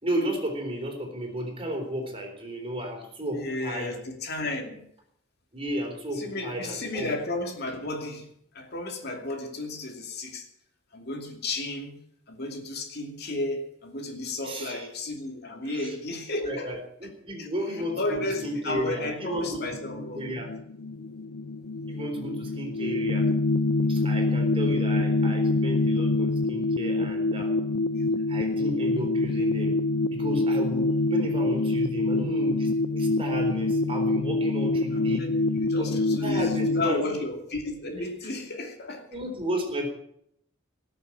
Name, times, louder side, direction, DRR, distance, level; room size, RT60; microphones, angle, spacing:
voice 1, 0.0-4.0 5.5-7.1 14.4-14.9 15.6-15.9 16.4-20.5 21.9-23.3 23.9-27.6 28.3-29.8 30.1-35.3 35.8-37.2 39.1-39.9, right 1 dB, 30° right, 2 dB, 3.9 m, -33 dB
voice 2, 3.3-4.8 6.1-8.3 8.5-10.5 10.9-12.0 12.3-16.7 17.4-17.5 18.0-20.3 22.0-22.1 27.8-28.2 34.9-39.1, left 2 dB, 55° left, 3 dB, 2.7 m, -33 dB
sound 1, 17.8-36.9, left 2 dB, 85° left, 0.5 m, -26 dB
19.0 x 6.9 x 8.7 m, 0.71 s
head